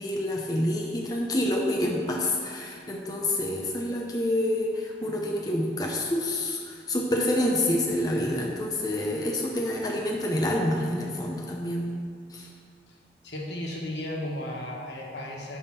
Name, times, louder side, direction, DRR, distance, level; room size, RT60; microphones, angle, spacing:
voice 1, 0.0-11.9 12.3-12.5, left 1 dB, 20° left, -1 dB, 0.7 m, -27 dB
voice 2, 13.2-15.6, left 1 dB, 75° left, -2 dB, 1.5 m, -34 dB
10.5 x 3.6 x 5.7 m, 2.3 s
head